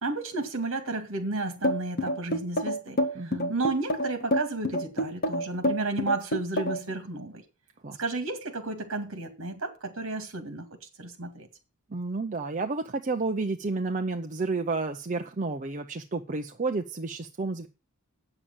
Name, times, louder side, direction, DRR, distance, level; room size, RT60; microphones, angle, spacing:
voice 1, 0.0-7.4 8.0-10.7 11.0-11.5, right 3 dB, 60° right, 2.2 m, -32 dB
sound 1, 1.6-6.9, equal, 45° left, 1.6 m, -27 dB
voice 2, 3.2-3.5 7.8-8.0 11.9-17.7, right 3 dB, 35° right, 0.6 m, -31 dB
8.6 x 7.0 x 8.7 m
head